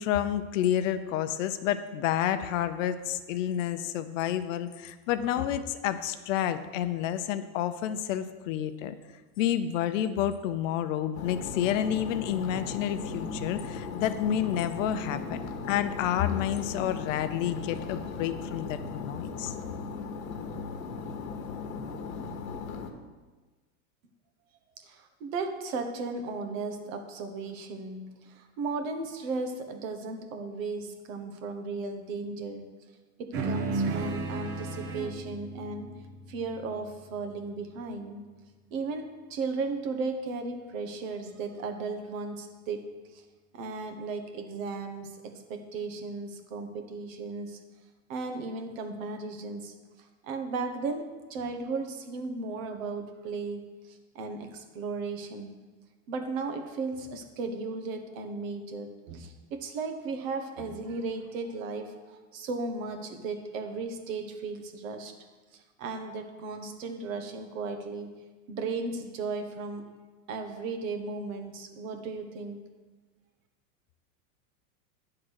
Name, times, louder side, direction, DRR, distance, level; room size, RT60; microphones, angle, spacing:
voice 1, 0.0-8.9 9.4-15.4 15.7-19.5, left 10 dB, 65° left, 11 dB, 0.7 m, -29 dB
sound 1, 11.1-22.9, left 4 dB, 85° left, 1.1 m, -37 dB
voice 2, 24.8-32.6 33.2-35.9 36.3-38.2 38.7-42.8 43.1-43.2 43.5-47.6 48.1-49.7 50.2-55.5 56.1-65.1 65.5-68.1 68.5-69.9 70.3-72.6, right 4 dB, 70° right, 6 dB, 1.2 m, -35 dB
sound 2, 33.3-38.1, right 3 dB, 35° right, 0.7 m, -35 dB
9.9 x 3.8 x 6.3 m, 1.3 s
supercardioid pair, 155°, 41 cm